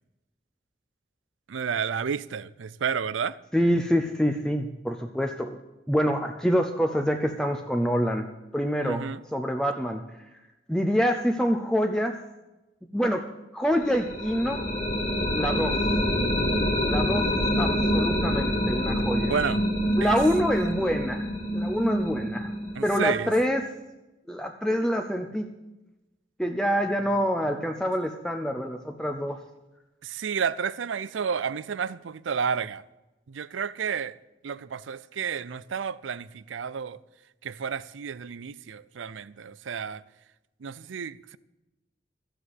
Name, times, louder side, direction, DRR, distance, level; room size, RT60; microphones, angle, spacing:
voice 1, 1.5-3.4 8.8-9.2 19.3-19.6 20.0-20.2 22.7-23.3 30.0-32.8 33.3-34.2 34.4-37.0 37.4-40.0 40.6-41.4, right 6 dB, 90° right, 0.5 m, -31 dB
voice 2, 3.5-5.6 5.9-8.3 8.5-10.0 10.7-12.2 12.9-13.3 13.5-14.6 15.3-15.8 16.9-19.3 20.0-21.3 21.5-22.5 22.8-23.6 24.3-25.5 26.4-29.4, equal, 5° left, 0.6 m, -26 dB
sound 1, 13.8-23.6, equal, 40° left, 2.2 m, -26 dB
13.0 x 7.8 x 8.2 m
head